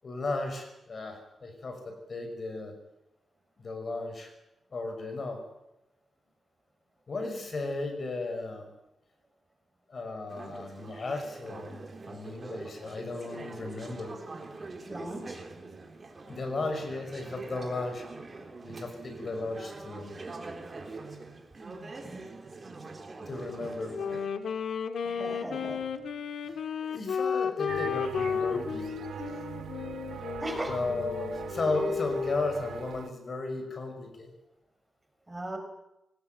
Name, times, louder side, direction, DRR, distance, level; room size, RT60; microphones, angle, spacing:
voice 1, 0.0-2.7 3.6-4.3 4.7-5.4 7.1-8.7 9.9-11.8 12.1-14.2 16.3-18.0 18.6-20.1 23.3-24.0 26.8-29.2 30.7-34.3, left 3 dB, 45° left, 6 dB, 6.0 m, -35 dB
Conversation / Chatter, 10.3-24.3, right 3 dB, 35° right, 4.0 m, -44 dB
voice 2, 14.9-15.4 22.0-22.3 25.0-25.8 30.4-30.8 35.3-35.6, right 1 dB, 15° right, 5 dB, 5.0 m, -37 dB
Wind instrument woodwind instrument, 23.8-32.5, left 6 dB, 80° left, 1.8 m, -33 dB
sound 1, 27.7-33.1, right 8 dB, 85° right, 0.9 m, -42 dB
24.0 x 19.5 x 9.2 m, 0.90 s
wide cardioid pair, 130°, 0 cm